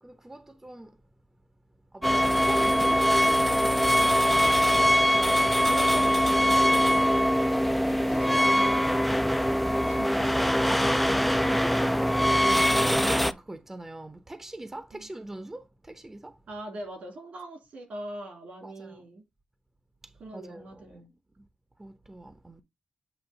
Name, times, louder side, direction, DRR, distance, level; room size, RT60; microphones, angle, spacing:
voice 1, 0.0-0.9 1.9-4.7 10.3-16.4 18.6-19.0 20.3-21.0 21.4-21.5 21.8-22.6, right 1 dB, 15° right, 0.8 m, -41 dB
sound 1, 2.0-13.3, equal, ahead, 0.4 m, -22 dB
voice 2, 2.1-3.0 5.6-10.9 14.9-15.1 16.5-19.2 20.2-21.1, right 1 dB, 85° right, 3.1 m, -42 dB
8.0 x 3.0 x 5.8 m
wide cardioid pair, 110°, 2 cm